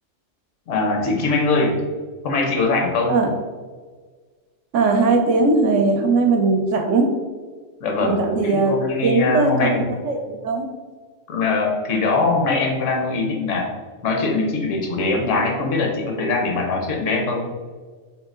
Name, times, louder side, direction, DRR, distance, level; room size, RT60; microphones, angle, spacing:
voice 1, 0.7-1.8 2.2-3.2 7.8-8.1 8.4-9.9 11.3-13.7 14.0-17.5, left 3 dB, 75° left, 1 dB, 1.1 m, -22 dB
voice 2, 4.7-7.1 8.0-8.8 9.0-10.6, right 3 dB, 75° right, 3 dB, 0.9 m, -19 dB
3.3 x 2.8 x 3.7 m, 1.5 s
omnidirectional pair, 1.3 m